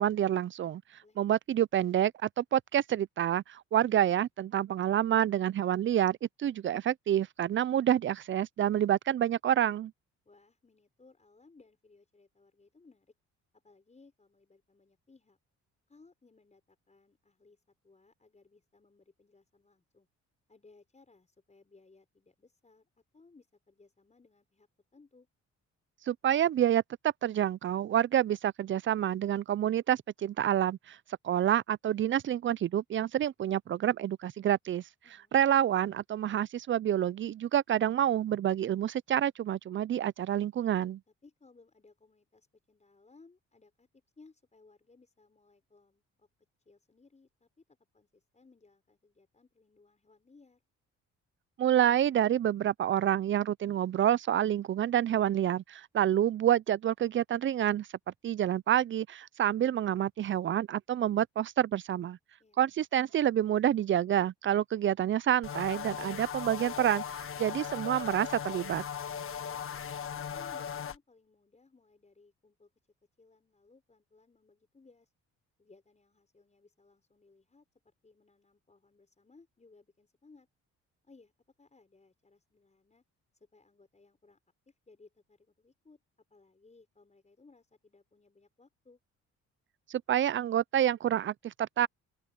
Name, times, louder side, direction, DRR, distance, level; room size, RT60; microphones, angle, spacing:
voice 1, 0.0-0.8 1.2-9.9 26.1-31.0 31.2-34.8 35.3-41.0 51.6-57.9 58.2-62.2 62.6-67.0 67.4-68.8 89.9-91.9, right 11 dB, 40° right, 0.5 m, -28 dB
voice 2, 10.3-13.1 13.6-15.4 15.9-20.1 20.5-25.3 35.0-35.4 41.1-43.9 44.2-46.3 46.7-50.6 62.4-62.6 69.2-72.7 73.2-75.1 75.6-80.5 81.0-81.3 81.6-83.0 83.4-84.4 84.7-86.0 86.3-89.0, left 3 dB, 25° left, 5.9 m, -62 dB
sound 1, 65.4-71.0, left 8 dB, 45° left, 1.4 m, -38 dB
open air
cardioid pair, 90°, 30 cm